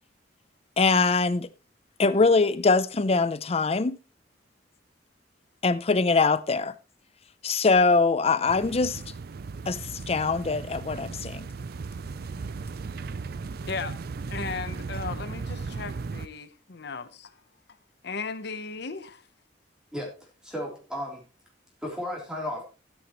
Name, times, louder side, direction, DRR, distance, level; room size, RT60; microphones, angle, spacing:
voice 1, 0.8-1.5 2.0-4.0 5.6-6.7 7.4-9.0 9.7-9.8 10.1-11.5, left 4 dB, 35° left, 0.6 m, -22 dB
sound 1, 8.5-16.3, right 4 dB, 55° right, 0.4 m, -36 dB
voice 2, 13.6-14.0 14.3-17.3 18.0-19.2, left 4 dB, 60° left, 0.9 m, -36 dB
voice 3, 20.4-21.2 21.8-22.6, left 1 dB, 5° right, 3.4 m, -34 dB
13.0 x 9.8 x 3.0 m
head